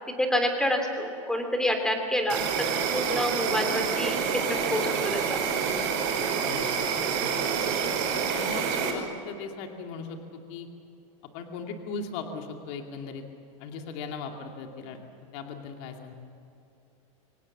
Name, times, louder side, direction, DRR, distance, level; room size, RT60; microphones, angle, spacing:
voice 1, 0.2-4.4 4.7-5.4, left 1 dB, 5° left, 5 dB, 3.1 m, -28 dB
Insect, 2.3-8.9, right 6 dB, 50° right, 4.9 m, -27 dB
voice 2, 6.4-6.8 7.2-7.3 8.3-10.7 11.3-13.2 13.6-15.0 15.3-16.1, left 5 dB, 55° left, 3 dB, 2.4 m, -38 dB
25.0 x 18.0 x 7.3 m, 2.8 s
supercardioid pair, 140°, 17 cm